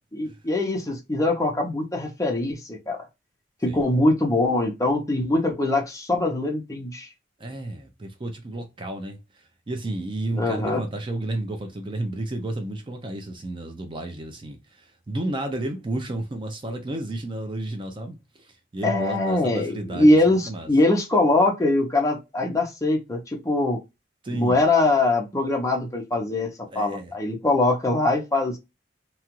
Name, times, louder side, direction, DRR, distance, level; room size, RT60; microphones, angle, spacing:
voice 1, 0.1-3.1 3.6-7.1 10.3-10.8 18.8-23.8 24.3-28.6, left 2 dB, 20° left, 0.6 m, -22 dB
voice 2, 3.7-4.0 7.4-20.7 24.2-24.6 26.7-27.1, right 1 dB, 25° right, 0.4 m, -32 dB
2.8 x 2.3 x 2.8 m
head